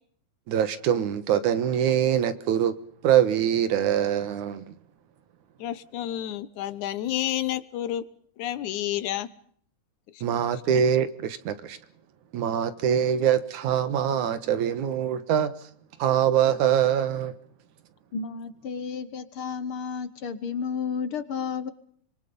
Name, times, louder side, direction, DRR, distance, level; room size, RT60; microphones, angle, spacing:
voice 1, 0.5-2.7 3.0-4.8 10.2-11.8 12.3-15.7 16.0-17.4, right 9 dB, 85° right, 2.8 m, -24 dB
voice 2, 5.6-8.1 8.4-9.3 10.1-10.2, left 12 dB, 80° left, 2.5 m, -30 dB
voice 3, 18.1-21.7, left 6 dB, 55° left, 1.8 m, -32 dB
25.5 x 23.5 x 5.4 m
omnidirectional pair, 3.4 m